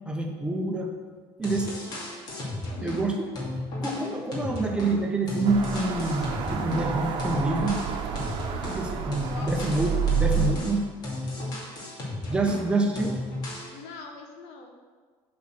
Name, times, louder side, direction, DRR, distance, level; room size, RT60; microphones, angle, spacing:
voice 1, 0.1-0.9 1.4-1.8 2.8-3.3 3.8-7.8 8.7-10.9 12.3-13.2, right 2 dB, 10° right, 2 dB, 1.0 m, -27 dB
sound 1, 1.1-1.2 1.4-3.1 3.3-6.9 7.2-12.7 12.9-13.7, left 1 dB, 45° left, 2.6 m, -34 dB
voice 2, 2.6-3.0 9.0-9.6 13.7-14.7, left 4 dB, 80° left, 2 dB, 1.4 m, -43 dB
sound 2, 5.5-10.5, right 6 dB, 55° right, 1.0 m, -29 dB
8.3 x 4.4 x 6.0 m, 1.5 s
cardioid pair, 125°, 10 cm